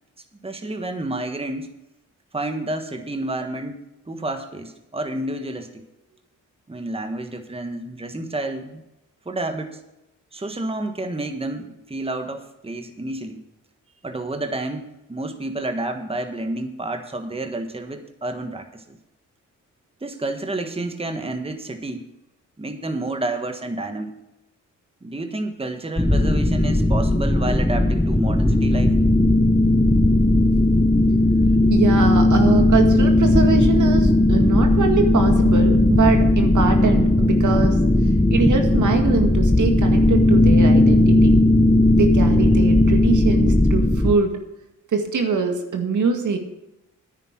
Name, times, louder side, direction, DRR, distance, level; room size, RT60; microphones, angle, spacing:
voice 1, 0.4-1.7 2.3-5.8 6.7-8.8 9.2-9.8 10.3-13.4 14.0-19.0 20.0-22.0 22.6-24.2 25.0-29.0, right 2 dB, 20° right, 6 dB, 1.4 m, -30 dB
sound 1, 26.0-44.1, left 1 dB, 10° left, 1.0 m, -17 dB
voice 2, 31.7-37.8 38.3-41.4 41.9-44.4 44.9-46.4, right 4 dB, 70° right, 4 dB, 2.0 m, -23 dB
10.0 x 9.1 x 6.1 m, 0.90 s
cardioid pair, 60°, 31 cm